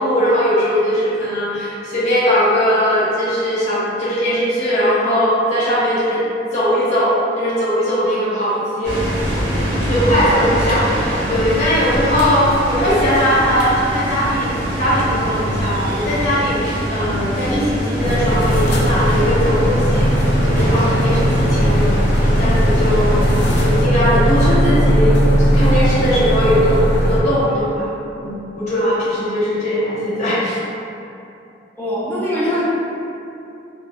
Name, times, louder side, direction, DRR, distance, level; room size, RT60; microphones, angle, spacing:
voice 1, 0.0-6.2 6.5-7.1 7.4-8.9 9.9-23.2 23.6-25.1 25.5-26.8 27.1-27.9 28.2-30.6, equal, 40° left, -10 dB, 0.8 m, -19 dB
sound 1, 8.8-23.8, equal, 75° right, 0.8 m, -23 dB
sound 2, 18.0-27.2, equal, 65° left, 0.4 m, -17 dB
voice 2, 31.8-32.6, equal, 10° left, -9 dB, 0.5 m, -21 dB
3.3 x 2.2 x 2.4 m, 2.7 s
head